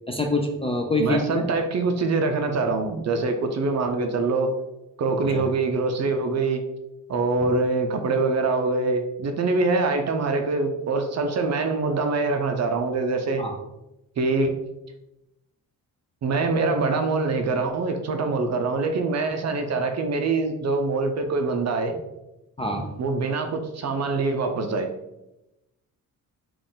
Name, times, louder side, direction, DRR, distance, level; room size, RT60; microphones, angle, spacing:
voice 1, 0.1-1.5 5.3-5.4 13.4-13.5 22.6-22.9, left 2 dB, 15° left, 2 dB, 0.4 m, -25 dB
voice 2, 1.0-4.5 5.0-6.6 7.1-13.4 14.2-14.5 16.2-22.0 23.0-24.9, right 3 dB, 50° right, 5 dB, 0.5 m, -24 dB
3.8 x 2.5 x 3.7 m, 0.94 s
cardioid pair, 90°, 34 cm